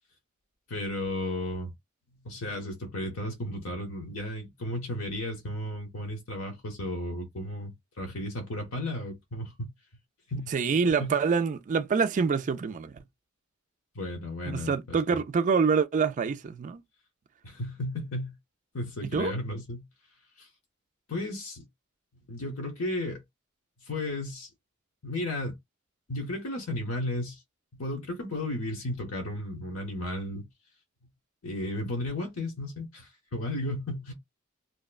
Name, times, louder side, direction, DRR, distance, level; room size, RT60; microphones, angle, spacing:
voice 1, 0.7-1.7 2.2-9.7 10.3-10.5 11.0-11.1 13.9-15.2 17.4-18.3 18.7-19.8 20.4-20.5 21.1-21.6 22.3-23.2 23.9-24.5 25.0-25.6 26.1-27.4 27.8-30.4 31.4-34.1, left 1 dB, 85° left, 0.9 m, -34 dB
voice 2, 10.5-13.0 14.5-16.8 19.0-19.3, right 5 dB, 40° right, 0.3 m, -26 dB
2.8 x 2.2 x 2.3 m
head